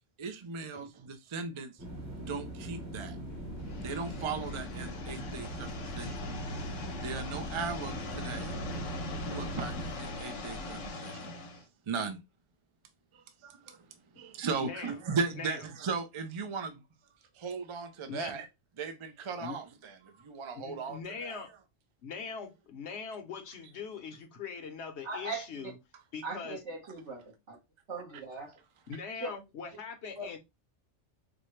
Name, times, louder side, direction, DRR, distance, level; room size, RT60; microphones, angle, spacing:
voice 1, 0.2-1.8 2.2-3.2 3.8-6.2 7.0-8.6 9.2-11.4 11.9-12.2 13.1-13.9 14.1-16.8 17.4-18.5 18.8-21.4, right 5 dB, 45° right, 0.4 m, -37 dB
sound 1, 1.8-9.9, right 1 dB, 15° right, 0.8 m, -42 dB
sound 2, 3.3-10.9, left 3 dB, 50° left, 0.6 m, -49 dB
sound 3, 3.6-11.6, left 1 dB, 85° left, 1.2 m, -41 dB
voice 2, 14.6-15.0 15.4-15.6 18.1-18.3 19.4-19.6 20.6-21.5 22.0-25.8 26.1-26.6 28.9-30.4, left 5 dB, 65° left, 1.0 m, -41 dB
voice 3, 25.0-25.7 26.2-27.6 27.9-28.6 29.2-29.3 30.1-30.3, right 3 dB, 70° right, 1.5 m, -39 dB
4.2 x 2.1 x 3.1 m
omnidirectional pair, 1.2 m